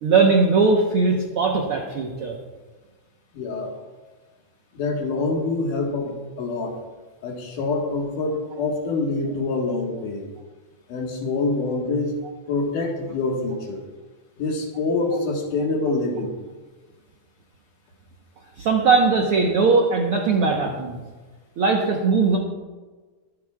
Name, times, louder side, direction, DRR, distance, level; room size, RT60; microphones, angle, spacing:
voice 1, 0.0-2.4 18.6-21.0 21.6-22.4, right 4 dB, 60° right, 0 dB, 1.6 m, -19 dB
voice 2, 3.3-3.7 4.7-6.8 7.2-10.3 10.9-12.2 12.5-13.8 14.4-16.3, left 3 dB, 80° left, 0 dB, 3.1 m, -25 dB
23.0 x 9.9 x 2.4 m, 1.3 s
omnidirectional pair, 3.6 m